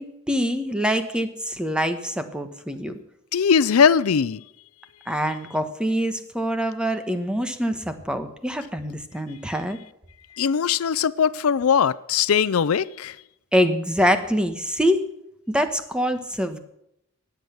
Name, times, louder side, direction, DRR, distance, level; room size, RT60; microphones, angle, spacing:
voice 1, 0.0-2.9 5.1-9.8 13.5-15.0 15.5-16.6, equal, 5° right, 1.2 m, -25 dB
voice 2, 3.3-4.4 10.4-13.2, left 7 dB, 75° left, 0.5 m, -20 dB
19.5 x 8.1 x 7.0 m
head